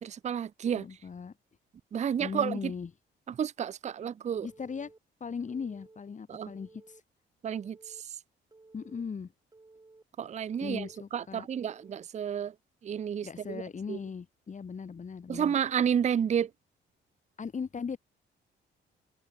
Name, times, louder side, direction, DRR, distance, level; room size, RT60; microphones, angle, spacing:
voice 1, 0.0-0.8 1.9-2.6 3.4-4.5 6.3-6.5 7.4-7.8 10.2-10.9 11.1-12.5 12.8-13.6 13.9-14.0 15.3-16.5, right 8 dB, 35° right, 0.5 m, -30 dB
voice 2, 0.7-1.3 2.2-2.9 4.4-4.9 5.2-7.0 8.7-9.3 10.6-11.5 13.2-15.5 17.4-18.0, left 6 dB, 40° left, 3.4 m, -38 dB
Telephone, 4.5-5.0 5.5-6.0 6.5-7.0 7.5-8.0 8.5-9.0 9.5-10.0 10.5-11.0 11.5-12.0, right 3 dB, 20° right, 4.7 m, -56 dB
open air
cardioid pair, 90°, 20 cm